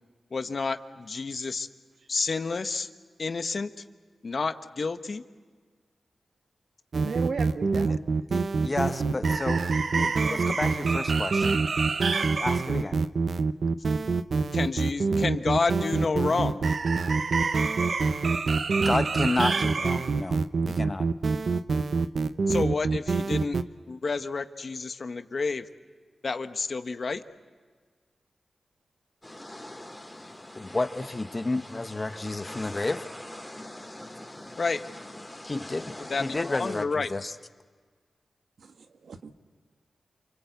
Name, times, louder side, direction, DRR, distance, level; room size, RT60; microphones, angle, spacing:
voice 1, 0.3-1.7 2.1-2.9 3.2-3.7 4.2-5.2 14.5-16.6 22.5-23.6 23.9-25.6 26.2-27.2 34.6-34.8 36.0-37.1, left 4 dB, 60° left, 9 dB, 1.1 m, -29 dB
sound 1, 6.9-23.6, right 4 dB, 70° right, 0.8 m, -25 dB
voice 2, 6.9-7.9 38.6-39.3, right 5 dB, 85° right, 7 dB, 1.4 m, -35 dB
voice 3, 8.3-11.6 12.4-13.0 18.8-20.4 20.7-21.1 30.5-33.0 35.4-35.9 36.2-37.3, left 2 dB, 35° left, 9 dB, 1.2 m, -31 dB
sound 2, 29.2-36.8, left 1 dB, 10° left, 3.6 m, -43 dB
29.0 x 24.0 x 8.2 m, 1.5 s
cardioid pair, 65°, 0 cm